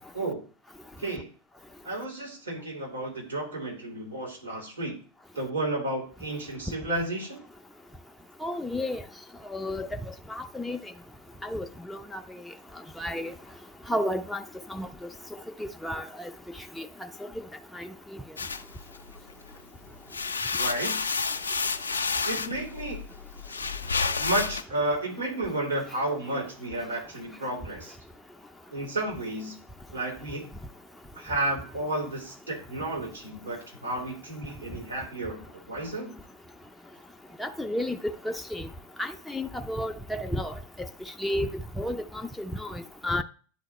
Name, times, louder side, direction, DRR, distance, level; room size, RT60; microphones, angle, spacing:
voice 1, 0.1-0.5 1.0-1.3 1.8-5.0 5.3-7.4 20.6-21.0 22.2-23.0 24.2-28.0 28.7-29.6 29.9-30.5 31.1-36.1, right 2 dB, 80° right, 3.2 m, -32 dB
voice 2, 8.4-9.0 9.5-9.9 10.3-10.8 11.4-12.2 13.0-13.3 13.9-14.4 14.7-14.9 15.8-16.3 16.8-16.9 17.7-17.9 37.4-38.7 39.0-40.5 41.2-41.5 41.8-43.2, left 1 dB, 5° left, 0.4 m, -31 dB
sound 1, 18.4-19.6 19.9-24.6, left 5 dB, 75° left, 0.4 m, -30 dB
9.7 x 3.9 x 3.2 m
figure-of-eight pair, 90°, 0 cm